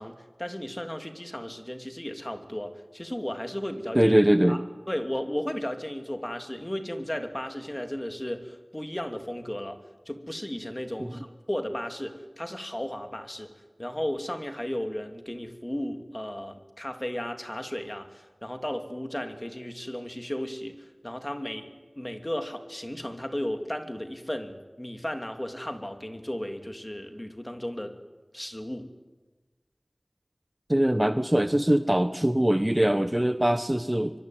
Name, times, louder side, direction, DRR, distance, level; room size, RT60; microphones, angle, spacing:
voice 1, 0.0-4.1 4.5-4.6 4.9-9.8 10.1-13.5 13.8-28.0 28.3-28.9, left 1 dB, 20° left, 6 dB, 2.9 m, -35 dB
voice 2, 3.9-4.6 11.0-11.1 30.7-34.1, right 1 dB, 20° right, 10 dB, 1.1 m, -22 dB
24.5 x 24.0 x 9.4 m, 1.3 s
wide cardioid pair, 45°, 0 cm